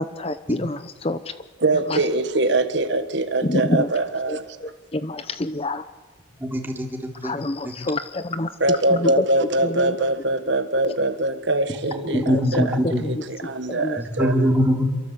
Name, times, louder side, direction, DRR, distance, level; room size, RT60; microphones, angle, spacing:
voice 1, 0.0-1.4 1.9-2.0 3.4-3.9 4.3-5.8 7.2-9.3 9.6-10.0 10.8-10.9 12.1-13.2 13.7-14.0, left 2 dB, 30° left, 0.7 m, -27 dB
voice 2, 1.6-4.4 8.6-14.5, right 2 dB, 60° right, 1.5 m, -23 dB
voice 3, 6.4-7.3 7.6-7.7 12.3-13.0 14.0-14.9, equal, 10° right, 3.7 m, -22 dB
27.5 x 23.5 x 8.3 m
head